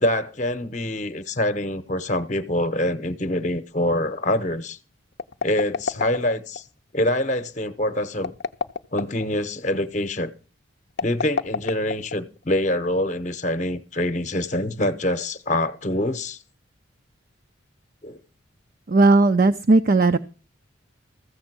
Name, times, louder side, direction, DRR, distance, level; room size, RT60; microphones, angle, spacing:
voice 1, 0.0-4.8 5.4-6.6 6.9-8.3 8.9-10.3 11.0-16.4 18.0-18.2, left 1 dB, 40° left, 0.9 m, -25 dB
sound 1, 5.1-6.6 8.1-9.3 10.9-12.4, left 5 dB, 55° left, 0.5 m, -28 dB
voice 2, 18.9-20.2, right 3 dB, 45° right, 0.5 m, -16 dB
14.5 x 7.2 x 6.0 m
head